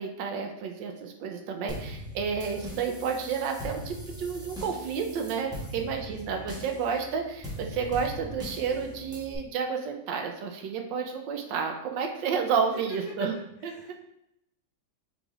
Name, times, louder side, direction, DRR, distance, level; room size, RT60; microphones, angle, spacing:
voice 1, 0.0-13.4 13.6-13.9, right 6 dB, 85° right, 4 dB, 1.3 m, -31 dB
sound 1, 1.7-9.4, equal, 5° right, 0.4 m, -40 dB
voice 2, 5.7-6.6 12.7-13.0 13.7-13.9, left 3 dB, 65° left, -2 dB, 1.0 m, -49 dB
6.1 x 3.3 x 2.4 m, 0.81 s
omnidirectional pair, 2.0 m